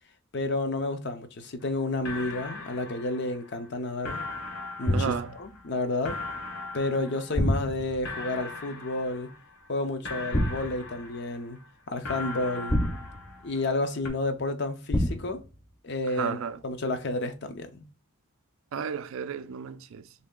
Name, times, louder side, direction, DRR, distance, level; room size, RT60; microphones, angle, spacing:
voice 1, 0.3-4.2 4.8-6.2 6.7-9.3 9.7-11.6 11.9-12.8 13.4-15.4 15.8-17.9, left 2 dB, 55° left, 0.6 m, -31 dB
sound 1, 1.6-1.7 2.0-3.7 4.0-7.8 8.0-9.7 10.0-11.7 12.0-13.8 14.0-14.1, left 3 dB, 85° left, 1.0 m, -40 dB
sound 2, 4.9-5.4 7.4-8.1 10.3-10.9 12.7-13.5 14.9-15.5, left 1 dB, 10° left, 0.3 m, -27 dB
voice 2, 4.9-5.4 16.1-16.6 18.7-20.1, right 6 dB, 70° right, 0.3 m, -33 dB
3.2 x 2.7 x 3.6 m
head